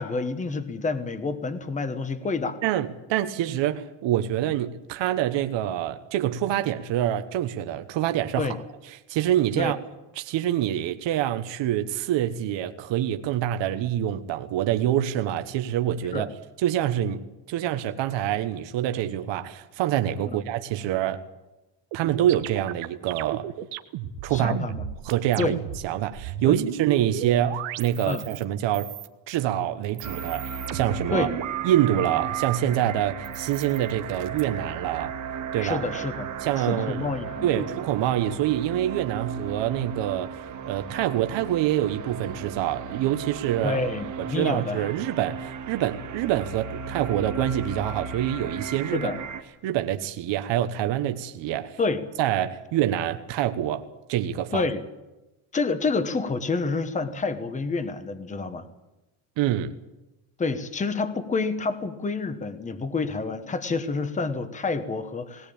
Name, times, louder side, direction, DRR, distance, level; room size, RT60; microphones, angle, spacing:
voice 1, 0.0-2.6 4.4-4.5 8.4-8.6 9.6-9.7 16.1-16.3 20.2-20.4 24.3-24.9 25.4-25.6 26.4-26.6 28.0-28.2 31.1-31.3 35.6-36.3 36.6-37.7 43.6-44.9 48.9-49.2 51.8-52.0 54.5-54.8 55.5-58.7 60.4-65.5, left 4 dB, 15° left, 10 dB, 1.1 m, -28 dB
voice 2, 2.6-8.6 9.1-9.8 10.2-16.3 16.6-21.2 21.9-23.5 24.2-24.6 25.0-25.5 25.8-28.9 29.3-31.3 31.6-35.1 35.5-35.8 36.4-37.0 37.4-40.4 40.7-43.8 44.2-49.1 49.6-51.8 52.2-54.7 59.4-59.7, right 12 dB, 60° right, 8 dB, 1.3 m, -26 dB
sound 1, 21.9-25.9 26.1-28.4 28.7-29.4 29.8-32.6 33.2-34.4, right 12 dB, 80° right, 1.4 m, -34 dB
sound 2, 30.0-49.4, right 6 dB, 35° right, 1.8 m, -36 dB
19.5 x 18.5 x 8.7 m, 1.0 s
cardioid pair, 180°, 49 cm